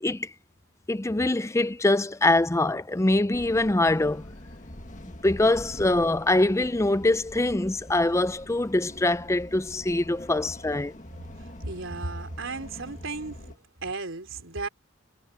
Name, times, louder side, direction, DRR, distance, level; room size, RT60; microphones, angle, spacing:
voice 1, 0.9-4.2 5.2-10.9, left 2 dB, 15° left, 0.5 m, -24 dB
sound 1, 3.3-13.6, left 1 dB, 35° left, 1.9 m, -44 dB
voice 2, 11.4-13.5 13.8-14.7, right 3 dB, 65° right, 3.7 m, -35 dB
head